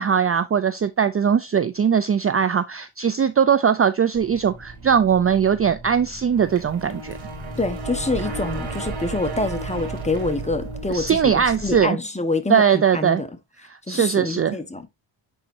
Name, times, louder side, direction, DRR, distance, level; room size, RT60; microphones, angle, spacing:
voice 1, 0.0-7.2 10.9-12.0 12.5-13.2 13.9-14.6, right 7 dB, 30° right, 0.5 m, -20 dB
sound 1, 4.1-11.8, right 2 dB, 75° right, 4.0 m, -34 dB
voice 2, 7.6-13.3 13.9-14.9, left 2 dB, 15° left, 1.5 m, -26 dB
10.0 x 4.2 x 2.8 m
cardioid pair, 75°, 48 cm